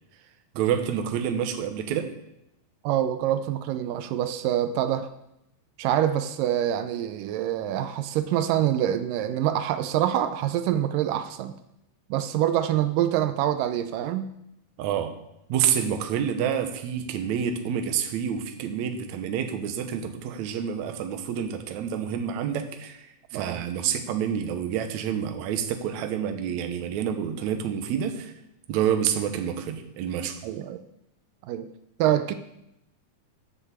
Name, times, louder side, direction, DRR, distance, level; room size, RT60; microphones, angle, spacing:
voice 1, 0.5-2.1 14.8-15.1 15.5-28.3 28.7-30.4, right 8 dB, 70° right, 6 dB, 2.1 m, -28 dB
voice 2, 2.8-5.1 5.8-11.6 12.1-14.3 23.3-23.6 30.4-30.8 31.4-31.7 32.0-32.3, right 11 dB, 85° right, 10 dB, 2.3 m, -25 dB
10.0 x 7.2 x 7.2 m, 0.85 s
omnidirectional pair, 3.8 m